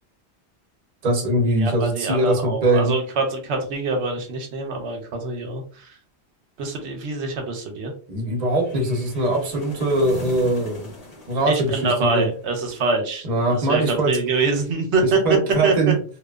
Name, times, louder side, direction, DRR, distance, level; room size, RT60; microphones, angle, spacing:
voice 1, 1.0-2.9 8.1-10.9 11.3-12.3 13.2-14.1 15.0-15.9, right 1 dB, 45° right, 1 dB, 0.8 m, -21 dB
voice 2, 1.6-6.0 6.6-7.9 11.5-15.9, right 3 dB, 90° right, 3 dB, 0.9 m, -24 dB
sound 1, 8.5-12.7, left 1 dB, 40° left, 0.8 m, -41 dB
2.9 x 2.2 x 2.3 m, 0.42 s
omnidirectional pair, 1.1 m